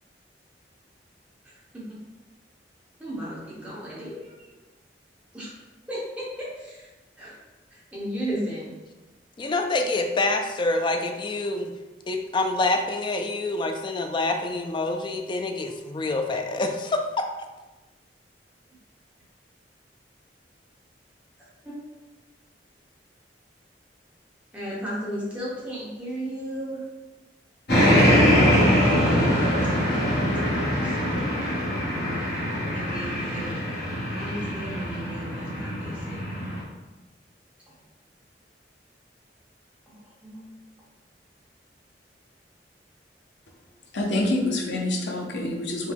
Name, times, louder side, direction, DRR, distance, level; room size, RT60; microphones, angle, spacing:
voice 1, 1.4-2.0 3.0-4.3 5.3-5.5 5.9-6.9 7.2-7.4 7.7-8.7 21.6-21.8 24.5-26.8 28.9-29.7 30.3-31.2 32.7-33.6 34.1-36.5 37.7-37.8 40.2-40.5, equal, 10° right, 1.1 m, -35 dB
voice 2, 9.4-11.7 12.1-17.0, left 2 dB, 25° left, 0.4 m, -26 dB
sound 1, 27.7-36.6, equal, 60° left, 1.2 m, -23 dB
voice 3, 43.9-45.9, left 1 dB, 85° left, 0.7 m, -26 dB
4.7 x 2.2 x 3.5 m
head